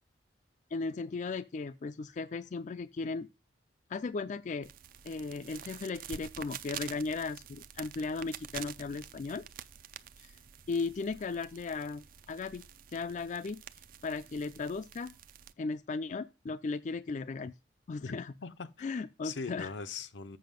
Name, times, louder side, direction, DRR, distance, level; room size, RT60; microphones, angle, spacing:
voice 1, 0.7-3.3 3.9-4.7 5.0-9.4 10.2-10.4 10.7-12.6 12.9-13.6 14.0-15.1 15.6-17.5 17.9-18.3 18.8-19.7, left 4 dB, 40° left, 0.4 m, -36 dB
sound 1, 4.6-15.5, right 9 dB, 50° right, 0.5 m, -48 dB
voice 2, 18.0-18.9 19.2-20.4, left 4 dB, 80° left, 0.7 m, -41 dB
7.7 x 5.5 x 5.2 m
head